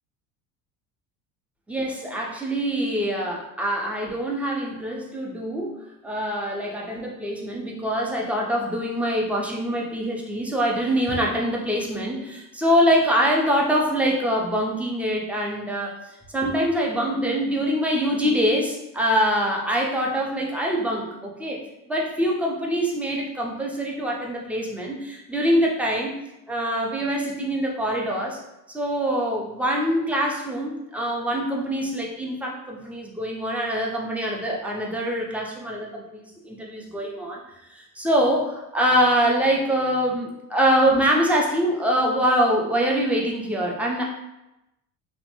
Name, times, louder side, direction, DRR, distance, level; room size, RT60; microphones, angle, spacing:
voice 1, 1.7-5.8 6.0-15.9 16.3-21.6 21.9-26.2 26.5-28.4 28.7-37.4 37.7-44.0, equal, 5° right, -2 dB, 0.6 m, -24 dB
3.1 x 2.1 x 3.0 m, 0.91 s
supercardioid pair, 95°, 36 cm